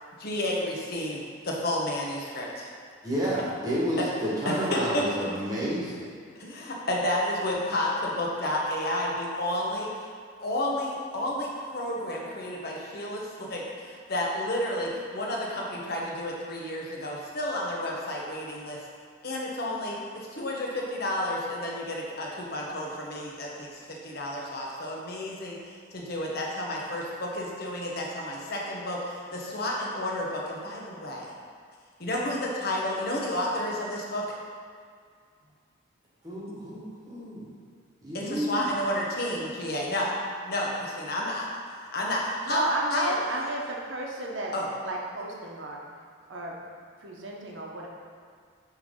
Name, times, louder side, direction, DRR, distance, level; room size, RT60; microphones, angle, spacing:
voice 1, 0.2-1.2 1.5-2.5 4.0-4.1 4.4-5.0 6.4-6.5 6.9-7.9 8.2-9.9 10.4-13.2 13.5-13.6 14.1-14.9 15.1-18.8 19.2-19.9 20.4-20.7 21.0-22.3 22.5-23.5 24.1-25.5 26.1-29.0 29.5-31.2 32.0-34.2 38.3-40.1 40.5-40.7 41.0-41.5 41.9-42.2 42.5-42.7 42.9-43.2 44.5-44.7, left 1 dB, 50° left, -2 dB, 1.0 m, -30 dB
voice 2, 3.0-6.1 36.2-37.4 38.0-38.7, equal, 20° right, -8 dB, 1.4 m, -30 dB
voice 3, 42.5-44.5 44.8-45.8 46.3-46.5 47.0-47.9, right 2 dB, 65° right, -1 dB, 0.9 m, -33 dB
9.0 x 3.3 x 3.7 m, 2.1 s
head